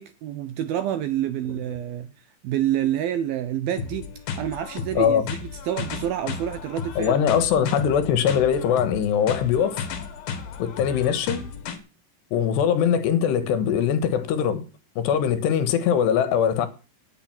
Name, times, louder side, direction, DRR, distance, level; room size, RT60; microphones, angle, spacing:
voice 1, 0.0-4.1 4.4-7.2 7.6-7.7, right 11 dB, 75° right, 2.2 m, -28 dB
sound 1, 3.8-11.8, left 6 dB, 60° left, 3.2 m, -34 dB
voice 2, 7.0-9.8 10.6-11.4 12.3-14.6 15.0-16.7, left 8 dB, 75° left, 3.3 m, -21 dB
18.5 x 8.3 x 6.0 m
omnidirectional pair, 5.1 m